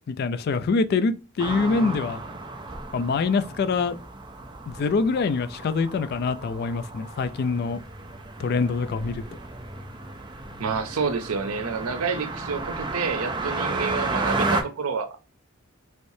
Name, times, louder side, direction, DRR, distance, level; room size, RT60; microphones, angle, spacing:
voice 1, 0.1-2.2 2.9-4.0 4.7-7.8 8.4-9.2, left 4 dB, 45° left, 0.3 m, -25 dB
sound 1, 1.4-14.6, right 2 dB, 20° right, 0.4 m, -33 dB
voice 2, 10.6-15.2, right 5 dB, 85° right, 0.6 m, -29 dB
3.2 x 3.1 x 2.6 m
head